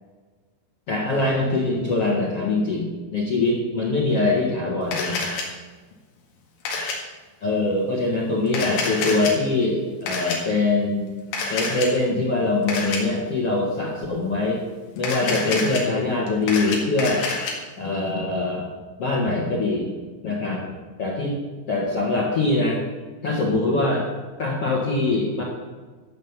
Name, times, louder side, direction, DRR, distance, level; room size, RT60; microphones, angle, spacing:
voice 1, 0.9-5.3 7.4-11.1 11.5-14.6 15.0-17.3 17.8-18.7 19.0-19.9 20.2-20.7 21.0-21.4 21.7-22.8 23.2-24.1 24.4-25.4, left 2 dB, 55° left, -3 dB, 1.8 m, -23 dB
Camera, 4.9-5.4 6.7-7.0 8.5-9.3 10.1-10.4 11.3-11.9 12.7-13.0 15.0-15.8 16.3-17.5, left 3 dB, 85° left, 4.5 m, -27 dB
13.5 x 6.6 x 7.3 m, 1.3 s
omnidirectional pair, 5.3 m